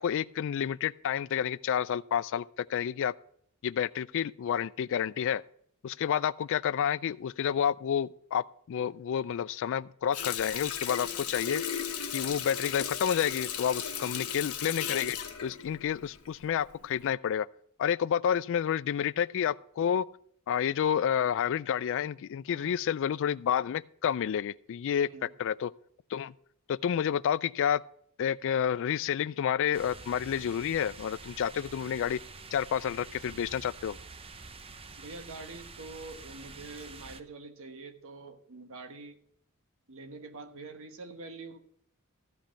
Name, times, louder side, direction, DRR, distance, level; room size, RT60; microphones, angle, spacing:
voice 1, 0.0-3.1 3.6-5.4 5.8-11.6 12.1-17.5 17.8-20.1 20.5-25.7 26.1-26.3 26.7-27.8 28.2-32.2 32.5-34.0, left 8 dB, 60° left, 0.3 m, -30 dB
Water tap faucet, 10.1-16.5 16.9-17.1, left 8 dB, 80° left, 1.2 m, -36 dB
voice 2, 14.0-14.3 22.5-22.8 25.0-25.3 35.0-39.2 39.9-41.6, right 3 dB, 65° right, 1.2 m, -46 dB
sound 1, 29.7-37.2, right 4 dB, 25° right, 0.6 m, -47 dB
14.5 x 5.2 x 5.8 m
head